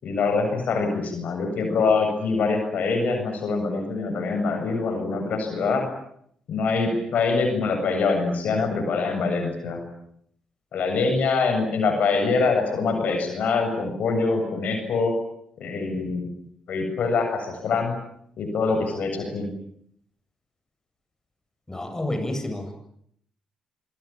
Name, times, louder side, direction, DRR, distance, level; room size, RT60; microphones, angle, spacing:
voice 1, 0.0-5.8 6.5-9.8 10.7-15.1 15.6-16.3 16.7-17.9 18.4-19.5, left 4 dB, 65° left, 5 dB, 7.5 m, -24 dB
voice 2, 21.7-22.7, left 1 dB, 20° left, 6 dB, 8.0 m, -29 dB
26.5 x 23.0 x 8.8 m, 0.70 s
hypercardioid pair, 40°, 3 cm